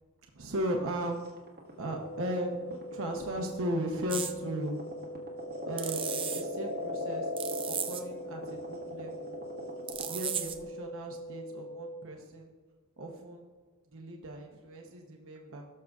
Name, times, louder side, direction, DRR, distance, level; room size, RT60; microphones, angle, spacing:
voice 1, 0.3-1.3 1.8-4.8 5.7-7.3 7.7-9.3 10.1-12.5 13.0-13.5 13.9-15.6, equal, 65° right, 1 dB, 0.9 m, -36 dB
sound 1, 1.2-10.2, left 1 dB, 45° right, 1.5 m, -38 dB
sound 2, 2.0-12.0, equal, 75° left, 0.7 m, -43 dB
sound 3, 4.1-4.3 5.8-6.4 7.4-8.0 9.9-10.6, right 8 dB, 25° right, 0.4 m, -35 dB
17.5 x 6.6 x 2.4 m, 1.5 s
head